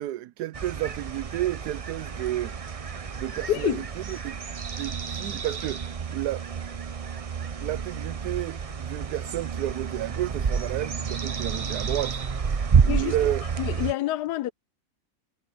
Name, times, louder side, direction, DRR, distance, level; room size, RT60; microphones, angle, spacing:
voice 1, 0.0-2.5 3.2-4.4 4.8-6.5 7.6-13.4, right 14 dB, 80° right, 1.2 m, -31 dB
sound 1, 0.5-13.9, right 6 dB, 40° right, 0.5 m, -29 dB
voice 2, 3.5-3.9 12.9-13.1 13.6-14.5, left 14 dB, 85° left, 1.2 m, -27 dB
omnidirectional pair, 1.7 m